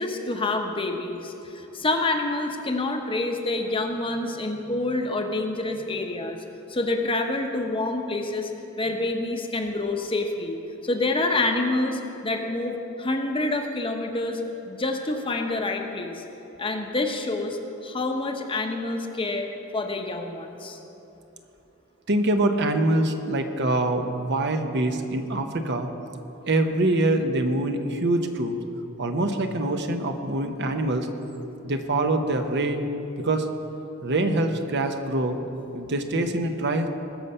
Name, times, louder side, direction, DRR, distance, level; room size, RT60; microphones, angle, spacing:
voice 1, 0.0-6.4 6.7-8.5 8.8-10.6 10.8-14.4 14.7-16.2 16.6-19.5 19.7-20.8, left 2 dB, 25° left, 4 dB, 0.9 m, -27 dB
voice 2, 22.1-25.9 26.5-28.6 29.0-31.1 31.4-32.8 33.2-33.5 34.0-35.4 35.7-36.9, right 2 dB, 55° right, 6 dB, 0.9 m, -24 dB
20.0 x 6.7 x 5.5 m, 3.0 s
head